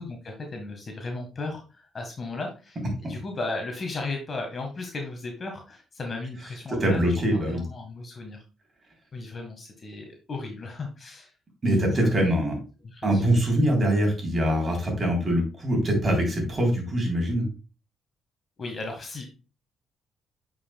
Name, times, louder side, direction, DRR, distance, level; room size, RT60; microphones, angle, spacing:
voice 1, 0.0-8.4 9.1-11.3 11.9-12.4 12.8-13.2 18.6-19.3, left 3 dB, 40° left, 2 dB, 1.6 m, -36 dB
voice 2, 6.7-7.6 11.6-12.6 13.0-17.5, right 1 dB, 35° right, 1 dB, 3.5 m, -23 dB
8.7 x 5.5 x 2.3 m, 0.33 s
cardioid pair, 90°, 0 cm